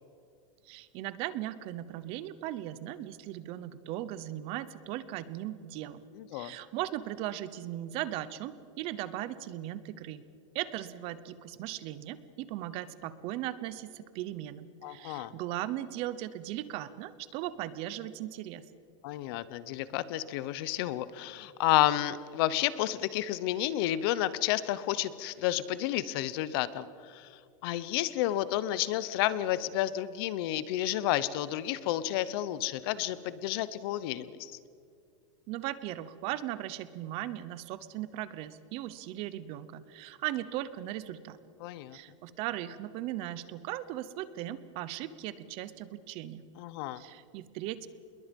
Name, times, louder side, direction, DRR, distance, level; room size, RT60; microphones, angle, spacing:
voice 1, 0.6-6.0 6.3-10.2 10.5-18.6 35.5-41.4 41.9-46.4 47.0-47.9, right 13 dB, 35° right, 15 dB, 0.9 m, -38 dB
voice 2, 6.2-6.5 14.8-15.3 19.0-27.3 27.6-34.6 41.6-42.0 46.6-47.0, left 13 dB, 50° left, 16 dB, 0.8 m, -31 dB
27.5 x 21.5 x 5.3 m, 2.4 s
supercardioid pair, 170°, 16 cm